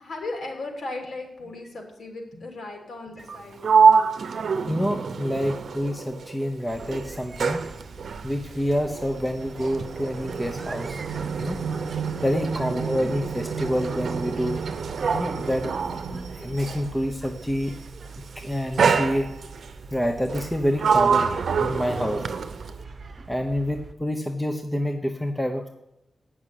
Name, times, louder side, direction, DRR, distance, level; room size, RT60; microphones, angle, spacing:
voice 1, 0.0-3.6 12.4-13.1, left 2 dB, 65° left, 1 dB, 3.0 m, -37 dB
Sliding door, 3.2-6.5 6.8-17.0 17.8-18.2 18.8-19.7 20.3-22.8, right 5 dB, 75° right, 0.8 m, -26 dB
voice 2, 4.7-7.6 8.2-11.0 11.4-11.6 12.2-14.6 15.1-17.7 18.4-19.3 19.9-21.3 21.6-22.2 23.3-25.7, equal, 5° left, 4 dB, 0.9 m, -27 dB
sound 1, 6.7-23.9, right 4 dB, 50° right, 0.9 m, -43 dB
9.1 x 6.2 x 8.3 m, 0.85 s
wide cardioid pair, 100°, 0 cm